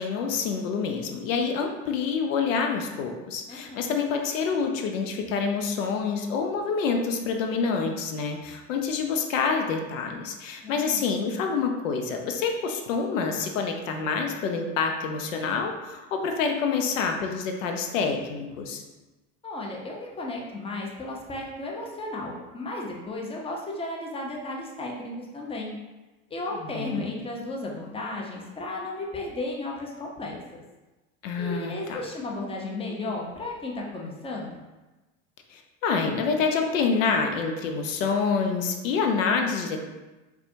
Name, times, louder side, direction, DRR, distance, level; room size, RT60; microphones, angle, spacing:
voice 1, 0.0-18.8 26.7-27.1 31.2-32.0 35.5-39.8, left 5 dB, 90° left, 4 dB, 0.5 m, -27 dB
voice 2, 3.5-3.9 10.6-11.0 19.4-25.7 26.3-30.6 31.4-34.6, left 2 dB, 15° left, -1 dB, 0.6 m, -34 dB
4.1 x 2.3 x 2.6 m, 1.1 s
hypercardioid pair, 95°, 38 cm